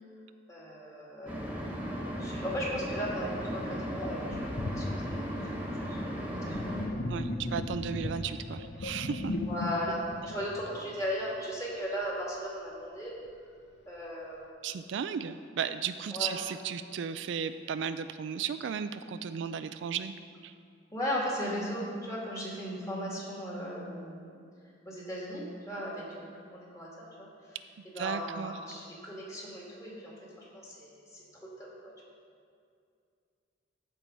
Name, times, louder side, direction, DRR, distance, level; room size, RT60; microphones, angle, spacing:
voice 1, 0.5-1.5 1.9-6.7 9.5-13.1 13.9-14.7 16.1-16.4 20.9-24.4 24.9-27.6 27.9-31.2 31.6-31.7, equal, 15° left, -5 dB, 2.2 m, -37 dB
sound 1, 1.3-6.9, equal, 10° right, 1.3 m, -36 dB
Sink (filling or washing), 3.4-3.5 4.0-11.3, left 1 dB, 60° left, 0.6 m, -37 dB
voice 2, 7.1-9.4 14.6-20.1 20.4-20.5 28.0-28.5, right 7 dB, 70° right, 11 dB, 0.3 m, -35 dB
13.5 x 4.6 x 5.4 m, 2.3 s
head